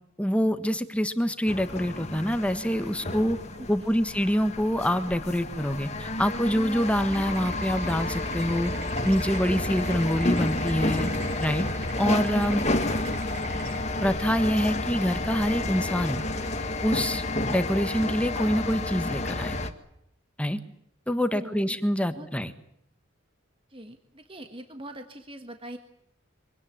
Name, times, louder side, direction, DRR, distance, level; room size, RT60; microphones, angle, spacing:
voice 1, 0.2-3.4 3.7-8.7 9.0-11.1 11.4-11.7 12.0-12.7 14.0-16.2 16.8-19.7 20.4-20.6 21.1-22.5, equal, 5° left, 10 dB, 1.4 m, -26 dB
sound 1, 1.5-19.7, left 2 dB, 35° left, 1.9 m, -30 dB
voice 2, 3.5-4.1 13.5-13.7 21.3-21.8 22.1-22.3 23.7-25.8, right 1 dB, 25° right, 7 dB, 1.6 m, -43 dB
sound 2, 7.1-13.8, right 4 dB, 50° right, 7.0 m, -45 dB
24.5 x 17.5 x 8.7 m, 0.76 s
head